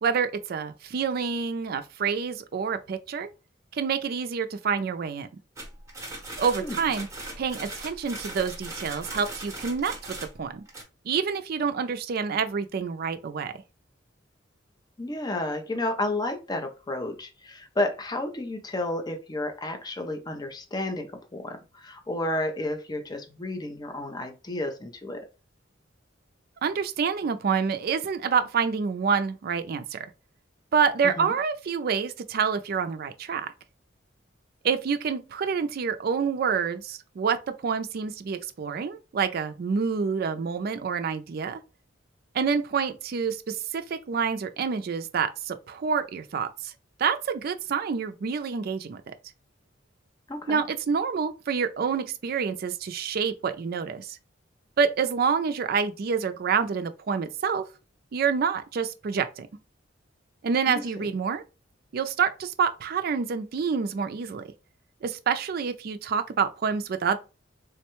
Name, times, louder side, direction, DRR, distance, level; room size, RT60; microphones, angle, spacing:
voice 1, 0.0-3.3 3.7-5.3 6.4-7.1 7.4-10.0 10.4-10.6 11.1-13.5 26.6-30.0 30.7-33.5 34.6-37.4 37.6-41.6 42.3-46.7 47.0-49.1 50.5-54.2 54.8-57.6 58.1-59.5 60.4-61.4 61.9-64.4 65.0-67.2, right 6 dB, 50° right, 0.4 m, -27 dB
sound 1, 5.6-10.8, right 2 dB, 15° right, 0.9 m, -39 dB
voice 2, 15.0-25.3 31.2-31.3 50.3-50.6 60.7-61.1, left 1 dB, 20° left, 0.5 m, -31 dB
3.5 x 2.1 x 2.9 m
head